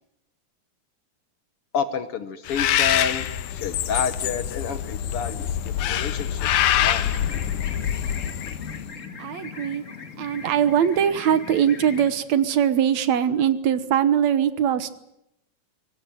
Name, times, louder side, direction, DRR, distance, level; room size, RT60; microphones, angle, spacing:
voice 1, 1.7-3.3 3.5-6.5 6.8-7.1, left 6 dB, 60° left, 11 dB, 1.8 m, -29 dB
Bird, 2.5-8.9, left 11 dB, 85° left, 2.6 m, -25 dB
sound 1, 7.0-12.1, left 5 dB, 30° left, 1.9 m, -39 dB
voice 2, 9.2-9.8 10.2-14.9, right 9 dB, 70° right, 13 dB, 2.4 m, -21 dB
23.0 x 18.5 x 9.3 m, 0.82 s
omnidirectional pair, 3.4 m